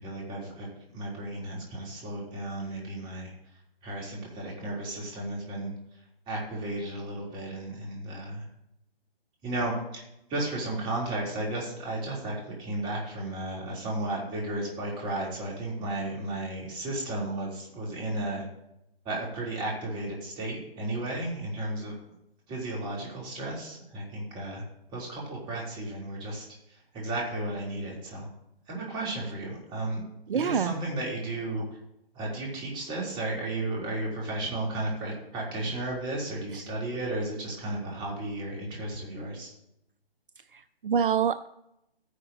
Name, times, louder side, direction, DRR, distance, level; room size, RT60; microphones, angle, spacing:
voice 1, 0.0-3.3 3.8-5.7 6.3-8.4 9.4-10.0 10.3-18.4 19.0-22.0 22.5-24.6 24.9-26.4 26.9-28.3 28.7-30.0 30.3-31.6 32.1-39.5, right 2 dB, 15° right, -3 dB, 2.5 m, -34 dB
voice 2, 30.3-30.7 36.5-36.6 40.5-41.5, right 7 dB, 60° right, 13 dB, 0.5 m, -26 dB
14.0 x 9.8 x 2.5 m, 0.82 s
figure-of-eight pair, 145°, 30 cm